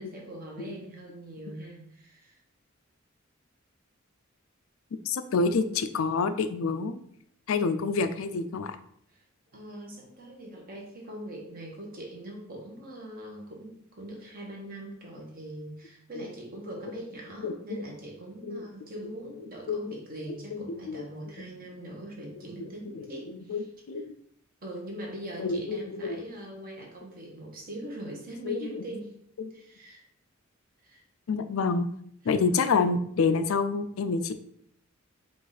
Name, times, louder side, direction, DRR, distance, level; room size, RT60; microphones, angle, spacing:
voice 1, 0.0-2.4 9.1-9.2 9.5-23.6 24.6-29.1 29.5-30.0 30.8-31.0 32.2-32.3, right 1 dB, 45° right, -1 dB, 1.2 m, -42 dB
voice 2, 5.1-7.0 7.5-8.8 17.4-17.8 18.4-18.6 19.7-20.0 20.5-21.0 22.8-24.1 25.4-26.2 28.4-28.8 29.4-29.5 31.3-31.9 32.2-34.3, left 4 dB, 80° left, 10 dB, 0.4 m, -28 dB
4.8 x 2.5 x 4.0 m, 0.67 s
head